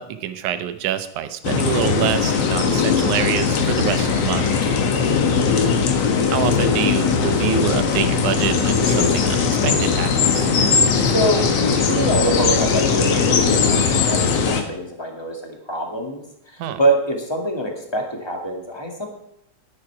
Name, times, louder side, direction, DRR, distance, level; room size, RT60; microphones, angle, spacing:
voice 1, 0.0-4.4 6.3-10.5 16.6-16.8, right 10 dB, 75° right, 10 dB, 2.3 m, -26 dB
sound 1, 1.4-14.6, left 5 dB, 55° left, 2.1 m, -19 dB
voice 2, 4.8-5.2 11.0-19.1, right 1 dB, 10° left, 2 dB, 1.3 m, -25 dB
12.0 x 9.9 x 4.7 m, 0.77 s
omnidirectional pair, 3.8 m